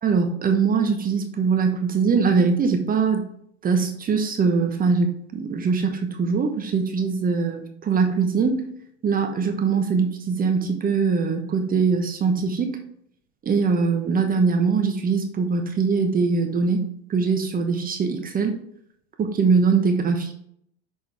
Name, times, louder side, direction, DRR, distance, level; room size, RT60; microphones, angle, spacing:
voice 1, 0.0-3.3 3.6-8.7 9.0-12.8 13.4-18.6 19.2-20.3, right 5 dB, 25° right, 5 dB, 1.0 m, -22 dB
6.3 x 5.1 x 3.3 m, 0.67 s
hypercardioid pair, 95°, 34 cm